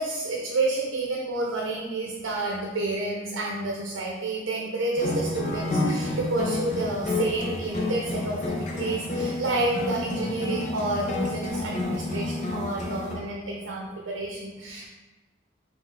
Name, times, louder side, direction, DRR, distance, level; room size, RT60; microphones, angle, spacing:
voice 1, 0.0-14.9, right 2 dB, 85° right, -2 dB, 0.6 m, -29 dB
sound 1, 5.0-13.1, left 2 dB, 35° left, 0.6 m, -30 dB
5.2 x 2.4 x 3.6 m, 1.2 s
head